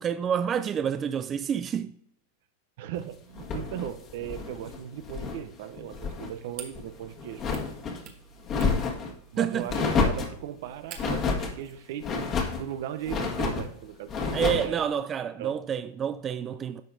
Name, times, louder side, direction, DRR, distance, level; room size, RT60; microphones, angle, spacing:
voice 1, 0.0-1.9 9.4-9.7 14.3-16.8, right 8 dB, 25° right, 0.4 m, -28 dB
voice 2, 2.8-7.4 9.3-12.3 12.6-14.8 15.4-15.6, right 11 dB, 65° right, 0.7 m, -38 dB
sound 1, 3.4-5.4 5.8-6.3 6.7-8.0 8.4-9.1 9.7-10.4 11.0-11.5 12.0-12.6 13.1-13.7 14.1-14.7, left 4 dB, 35° left, 1.6 m, -29 dB
sound 2, 5.9-11.3, right 8 dB, 50° right, 1.4 m, -49 dB
10.5 x 5.9 x 2.7 m
hypercardioid pair, 120°, 0 cm